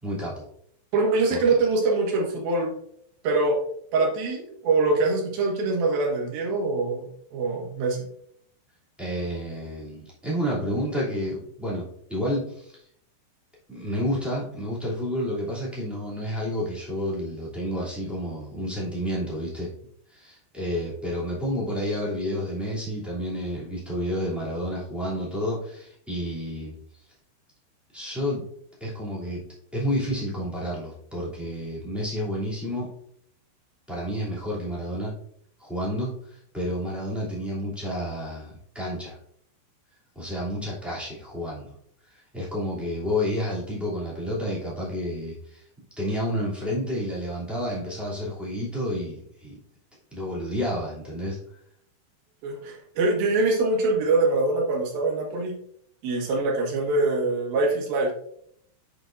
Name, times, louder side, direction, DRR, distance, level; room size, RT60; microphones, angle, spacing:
voice 1, 0.0-0.4 1.3-1.4 9.0-12.7 13.7-19.7 20.1-26.7 27.9-28.4 28.8-29.4 29.7-32.9 33.9-35.1 35.6-39.2 40.1-41.7 42.1-45.6 46.0-49.6 50.1-51.4, equal, ahead, -8 dB, 1.2 m, -30 dB
voice 2, 0.9-2.7 3.2-3.6 3.9-8.0 52.4-55.5 56.0-58.1, right 3 dB, 60° right, -1 dB, 3.1 m, -24 dB
8.4 x 6.0 x 2.6 m, 0.67 s
omnidirectional pair, 5.5 m